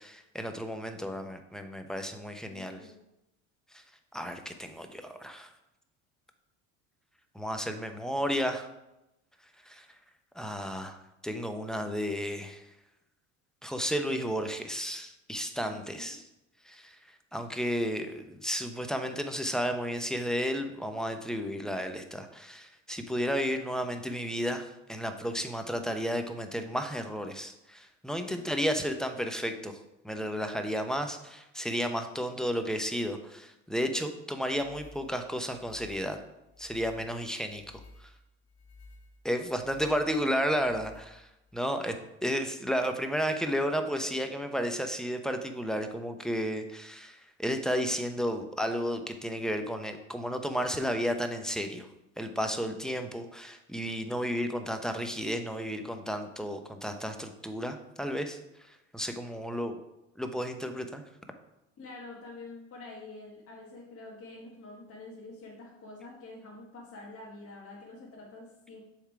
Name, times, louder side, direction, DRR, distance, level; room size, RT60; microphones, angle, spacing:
voice 1, 0.0-2.8 3.7-3.8 4.1-5.5 7.3-8.7 9.6-9.9 10.3-11.0 11.2-12.6 13.6-16.2 16.7-17.0 17.3-29.8 30.0-36.2 36.6-37.6 39.2-42.0 42.2-51.9 52.2-58.4 58.9-59.8 60.2-61.0, equal, ahead, 6 dB, 0.7 m, -32 dB
voice 2, 2.5-3.0 15.7-16.2 28.3-28.4 61.8-68.8, left 2 dB, 35° left, -3 dB, 1.4 m, -47 dB
sound 1, 34.4-41.6, left 2 dB, 65° left, 1.9 m, -54 dB
7.0 x 3.7 x 4.7 m, 0.89 s
hypercardioid pair, 75°, 38 cm